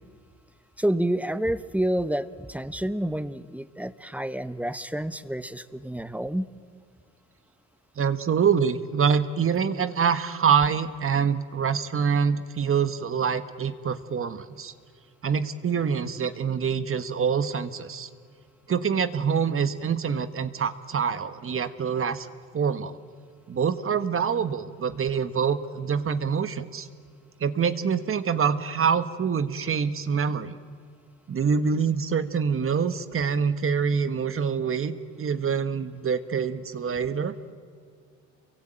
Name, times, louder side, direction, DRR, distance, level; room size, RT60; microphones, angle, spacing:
voice 1, 0.8-6.5, right 1 dB, 5° right, 13 dB, 1.1 m, -29 dB
voice 2, 8.0-14.7 15.2-18.1 18.7-22.3 22.5-23.0 23.5-26.9 27.4-30.6 31.3-34.9 35.2-37.3, right 6 dB, 45° right, 11 dB, 1.5 m, -25 dB
28.5 x 23.5 x 9.0 m, 2.1 s
cardioid pair, 90°, 30 cm